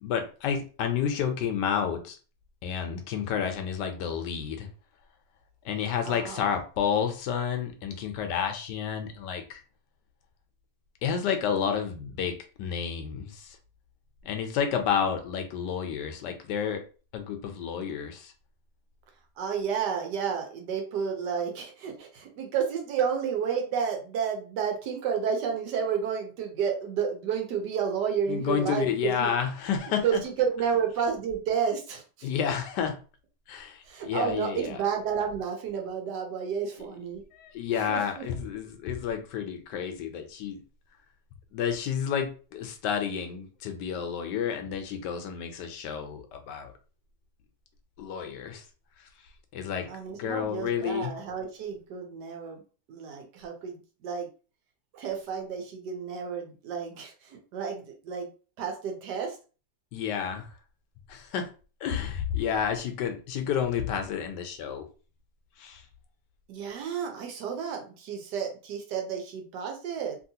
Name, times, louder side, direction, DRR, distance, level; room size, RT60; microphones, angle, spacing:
voice 1, 0.0-2.2 2.6-4.7 5.6-9.6 11.0-13.6 14.2-16.8 17.1-18.3 28.3-30.2 32.2-33.0 33.5-34.8 37.3-40.6 41.5-46.7 48.0-48.7 49.0-49.3 49.5-51.1 59.9-60.5 61.1-61.5 61.8-64.8 65.6-65.8, left 7 dB, 80° left, 6 dB, 1.2 m, -30 dB
voice 2, 6.0-6.4 19.4-29.3 30.0-32.3 33.8-37.2 37.7-38.2 49.9-52.6 52.9-54.3 54.9-58.3 58.6-59.4 66.5-70.2, right 7 dB, 75° right, 3 dB, 1.3 m, -31 dB
3.0 x 2.8 x 2.7 m, 0.36 s
omnidirectional pair, 1.9 m